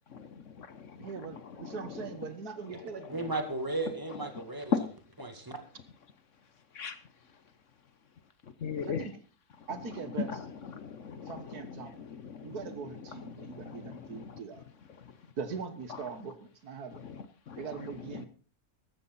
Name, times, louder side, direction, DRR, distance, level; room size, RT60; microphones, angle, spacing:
voice 1, 1.0-3.3 5.3-5.4 8.9-9.2 9.7-10.5 11.3-12.0 12.4-14.6 15.4-17.0 17.6-18.3, right 5 dB, 85° right, 2.0 m, -41 dB
voice 2, 3.1-4.7 5.2-5.6, right 2 dB, 15° right, 2.0 m, -35 dB
voice 3, 8.6-9.0 10.7-11.3 12.3-12.5 13.4-13.5 17.5-17.6, left 6 dB, 55° left, 1.2 m, -33 dB
14.0 x 13.0 x 4.2 m
omnidirectional pair, 1.6 m